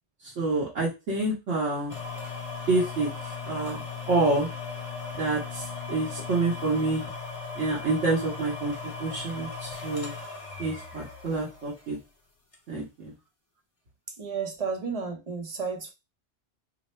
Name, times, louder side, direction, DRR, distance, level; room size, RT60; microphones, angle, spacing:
voice 1, 0.4-1.9 2.7-3.1 3.4-4.5 5.2-7.0 7.6-8.7 9.0-10.1 10.6-12.0 12.7-13.1, right 2 dB, 75° right, 1.3 m, -27 dB
sound 1, 1.9-11.9 12.5-12.6, left 4 dB, 30° left, 0.9 m, -37 dB
voice 2, 14.2-15.9, right 5 dB, 40° right, 0.7 m, -32 dB
3.1 x 2.0 x 4.1 m
omnidirectional pair, 1.2 m